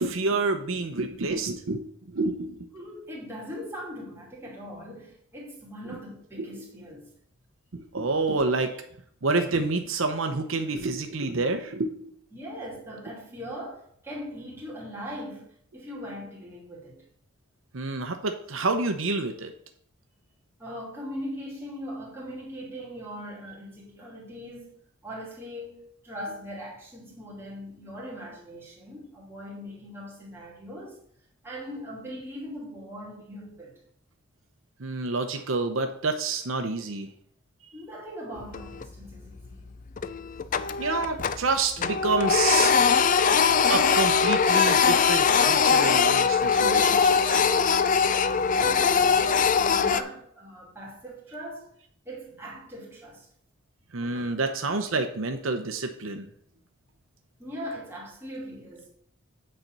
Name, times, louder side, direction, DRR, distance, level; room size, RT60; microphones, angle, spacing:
voice 1, 0.0-2.7 6.4-6.5 7.7-8.7 9.2-12.1 17.7-19.5 34.8-37.1 40.8-42.7 43.7-47.8 53.9-56.3, right 3 dB, 70° right, 0.8 m, -28 dB
voice 2, 2.7-7.1 12.3-17.0 20.6-24.7 25.0-31.0 31.4-33.8 37.7-39.7 48.0-51.7 52.0-53.3 54.0-54.4 57.4-58.9, equal, 10° right, 2.7 m, -40 dB
Printer, 38.4-39.0 39.4-39.5 40.0-41.5 41.8-50.0, left 6 dB, 40° left, 0.4 m, -21 dB
8.8 x 4.3 x 6.7 m
head